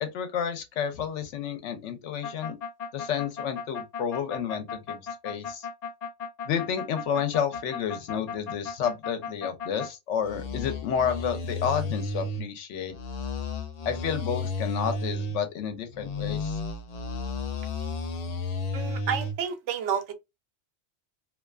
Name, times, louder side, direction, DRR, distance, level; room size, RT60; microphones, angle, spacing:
voice 1, 0.0-2.6 2.9-5.7 6.4-12.9 13.9-16.6, left 8 dB, 85° left, 0.9 m, -30 dB
sound 1, 2.2-9.9 10.2-12.4 12.9-15.4 15.9-19.3, left 3 dB, 60° left, 0.4 m, -33 dB
voice 2, 18.7-20.1, right 7 dB, 80° right, 0.9 m, -30 dB
2.6 x 2.3 x 2.2 m
omnidirectional pair, 1.2 m